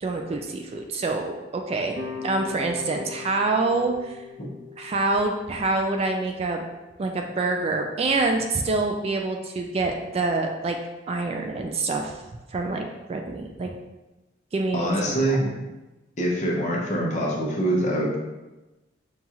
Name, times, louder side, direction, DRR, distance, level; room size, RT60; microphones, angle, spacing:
voice 1, 0.0-2.0 2.2-4.2 4.8-6.6 7.0-10.8 11.1-12.2 12.5-13.7 14.5-15.4, right 3 dB, 35° right, 3 dB, 0.3 m, -26 dB
sound 1, 1.9-7.0, left 5 dB, 80° right, 1.0 m, -40 dB
voice 2, 14.7-15.7 16.2-18.2, right 1 dB, 40° left, -3 dB, 0.8 m, -24 dB
5.4 x 2.4 x 2.9 m, 1.1 s
head